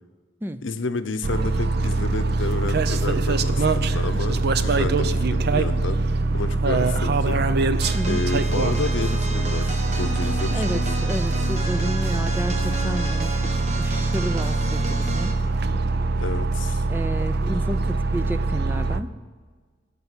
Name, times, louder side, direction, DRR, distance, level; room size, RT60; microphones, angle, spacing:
voice 1, 0.6-6.0 6.3-7.4 8.1-11.0 16.2-16.8, left 3 dB, 75° left, 10 dB, 0.7 m, -31 dB
sound 1, 1.2-19.0, right 3 dB, 55° right, 0.6 m, -23 dB
sound 2, 7.8-15.4, right 1 dB, 35° right, 1.2 m, -33 dB
sound 3, 8.1-15.2, equal, 75° right, 1.5 m, -45 dB
voice 2, 10.5-13.3 13.8-15.3 16.9-19.1, right 1 dB, 10° right, 11 dB, 0.4 m, -31 dB
11.0 x 7.0 x 6.8 m, 1.5 s
head